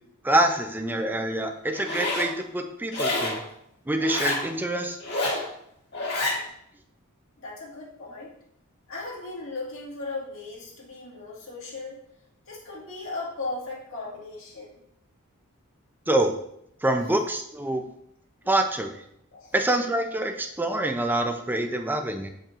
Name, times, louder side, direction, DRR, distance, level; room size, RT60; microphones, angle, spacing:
voice 1, 0.2-3.4 3.9-5.0 16.1-16.3 16.8-17.8 18.5-18.9 19.5-22.3, right 1 dB, 10° right, 5 dB, 0.5 m, -25 dB
Zipper (clothing), 1.7-2.3 2.9-3.4 4.0-4.4 5.0-5.4 5.9-6.4, left 2 dB, 50° left, 1.9 m, -28 dB
voice 2, 6.1-6.5 7.4-8.4 8.9-12.0 12.5-14.8 19.3-19.5, left 3 dB, 65° left, -5 dB, 2.0 m, -37 dB
7.1 x 5.4 x 2.5 m, 0.73 s
head